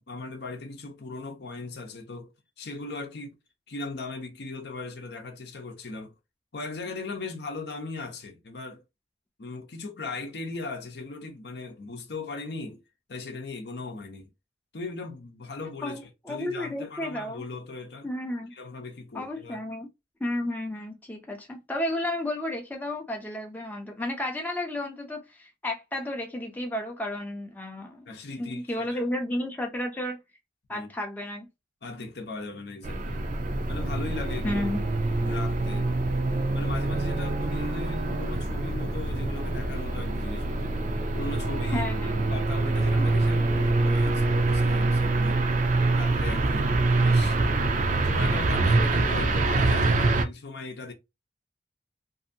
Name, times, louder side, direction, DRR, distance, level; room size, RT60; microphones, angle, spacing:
voice 1, 0.0-2.3 2.6-3.4 3.7-6.1 6.5-8.8 9.4-12.8 13.1-14.3 14.7-16.0 16.3-18.1 18.5-19.6 28.1-29.0 30.7-30.9 31.8-33.3 33.7-34.7 35.2-35.9 36.5-40.8 41.1-41.9 42.3-45.4 45.9-47.4 48.0-50.9, left 3 dB, 65° left, 0.7 m, -38 dB
voice 2, 15.8-17.4 18.0-18.5 19.1-19.9 20.2-28.1 28.4-30.2 30.7-31.5 34.4-34.8 41.7-42.4, left 1 dB, 10° left, 0.5 m, -32 dB
sound 1, 32.8-50.2, right 2 dB, 45° right, 0.4 m, -25 dB
2.7 x 2.5 x 2.6 m
head